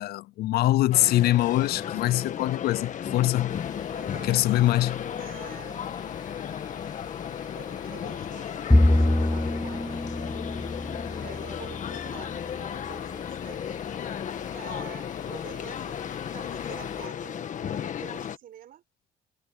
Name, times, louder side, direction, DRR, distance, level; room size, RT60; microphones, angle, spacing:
voice 1, 0.0-3.5 4.2-5.0, left 15 dB, 70° left, 0.5 m, -23 dB
sound 1, 0.9-18.4, left 9 dB, 50° left, 1.6 m, -35 dB
sound 2, 3.5-17.1, left 4 dB, 25° left, 1.4 m, -46 dB
voice 2, 3.9-4.8 5.2-6.0 7.5-10.1 11.2-13.8 14.5-16.0 16.3-18.8, right 10 dB, 60° right, 4.7 m, -47 dB
Bowed string instrument, 8.7-12.2, left 1 dB, 5° left, 0.3 m, -24 dB
cardioid pair, 110°, 17 cm